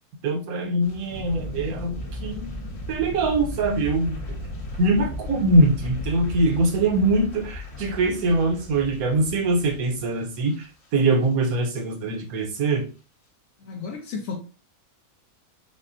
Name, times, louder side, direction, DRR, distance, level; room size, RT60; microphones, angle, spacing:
voice 1, 0.2-1.9 2.2-2.5 2.9-4.2 4.8-10.7 10.9-12.9, right 2 dB, 75° right, 1.3 m, -22 dB
sound 1, 0.8-11.9 12.2-12.6 12.9-13.0, left 2 dB, 85° left, 2.1 m, -40 dB
sound 2, 1.1-6.5, left 1 dB, 40° left, 0.4 m, -35 dB
voice 2, 13.6-14.4, left 5 dB, 65° left, 1.0 m, -33 dB
5.8 x 2.1 x 2.6 m
omnidirectional pair, 1.6 m